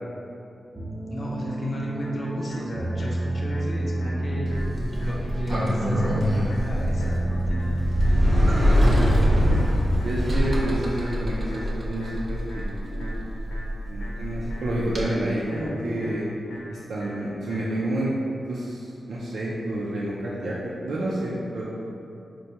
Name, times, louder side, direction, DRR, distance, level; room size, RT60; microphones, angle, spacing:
sound 1, 0.7-8.8, right 1 dB, 10° right, 0.7 m, -30 dB
voice 1, 1.1-4.5 4.9-9.0, equal, 50° left, -4 dB, 0.6 m, -34 dB
sound 2, 2.0-18.0, equal, 80° left, 0.9 m, -44 dB
Sliding door, 4.5-15.0, equal, 50° right, 0.7 m, -24 dB
voice 2, 10.0-13.2 13.8-16.2 16.7-18.1 18.5-21.7, right 1 dB, 80° right, -7 dB, 0.4 m, -29 dB
4.4 x 2.2 x 2.8 m, 2.7 s
cardioid pair, 65°, 0 cm